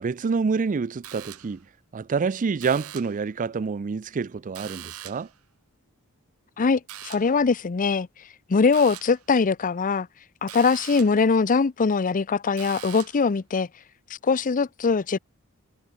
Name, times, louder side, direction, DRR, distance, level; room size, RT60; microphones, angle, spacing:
voice 1, 0.0-1.6 1.9-5.3, right 5 dB, 35° right, 0.4 m, -27 dB
sound 1, 1.0-1.7 2.6-3.3 4.5-5.4 6.9-7.4 8.7-9.2 10.5-11.3 12.6-13.3, right 11 dB, 90° right, 5.1 m, -42 dB
voice 2, 6.6-8.1 8.5-10.1 10.4-13.7 14.2-15.2, left 5 dB, 35° left, 0.5 m, -22 dB
head